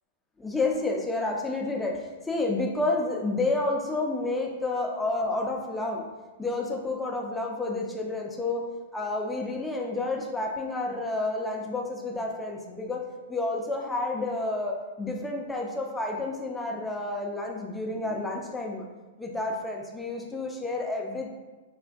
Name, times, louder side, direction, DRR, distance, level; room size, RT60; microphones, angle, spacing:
voice 1, 0.4-6.1 6.4-18.9 19.2-21.3, left 2 dB, 5° left, 0 dB, 0.4 m, -30 dB
3.3 x 2.1 x 2.5 m, 1.2 s
hypercardioid pair, 130°, 0 cm